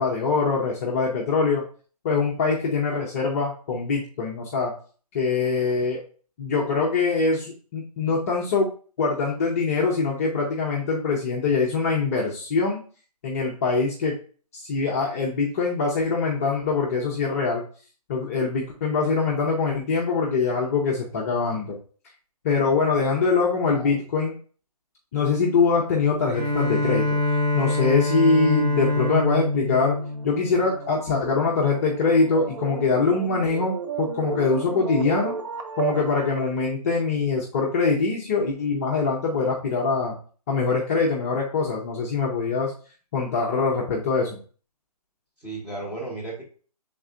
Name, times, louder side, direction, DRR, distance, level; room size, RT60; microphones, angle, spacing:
voice 1, 0.0-1.6 2.0-4.7 5.1-6.0 6.4-8.7 9.0-12.8 13.2-14.1 14.5-17.6 18.1-21.8 22.4-24.4 25.1-27.2 27.5-30.0 30.2-35.3 35.8-40.2 40.5-42.7 43.1-44.4, left 4 dB, 25° left, -3 dB, 0.5 m, -23 dB
voice 2, 23.1-24.0 45.4-46.4, right 2 dB, 5° right, -6 dB, 1.0 m, -36 dB
Bowed string instrument, 26.3-31.0, left 2 dB, 85° right, 1.8 m, -25 dB
sound 1, 29.4-36.6, right 6 dB, 50° right, 0.8 m, -34 dB
5.4 x 3.6 x 2.5 m, 0.41 s
figure-of-eight pair, 155°, 20 cm